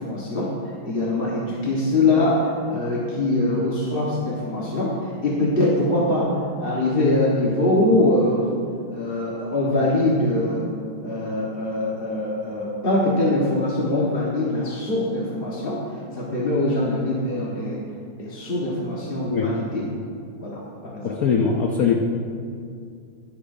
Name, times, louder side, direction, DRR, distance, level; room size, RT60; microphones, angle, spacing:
voice 1, 0.0-8.5 8.9-10.7 11.0-17.8 18.1-19.8 20.4-21.2, left 2 dB, 30° left, -6 dB, 1.4 m, -23 dB
voice 2, 21.0-21.9, left 6 dB, 60° left, 1 dB, 1.0 m, -21 dB
23.5 x 8.4 x 2.7 m, 2.4 s
omnidirectional pair, 2.2 m